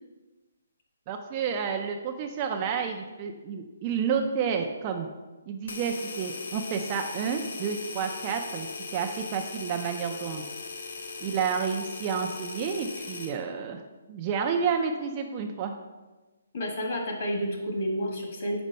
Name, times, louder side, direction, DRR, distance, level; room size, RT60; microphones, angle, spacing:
voice 1, 1.1-5.1 5.5-8.7 8.9-10.4 11.2-13.8 14.1-15.7, right 6 dB, 20° right, 3 dB, 0.3 m, -30 dB
sound 1, 5.7-13.4, left 3 dB, 60° left, 0.7 m, -38 dB
voice 2, 16.5-18.6, equal, 40° left, 0 dB, 1.4 m, -30 dB
5.1 x 4.4 x 5.4 m, 1.2 s
hypercardioid pair, 175°, 0 cm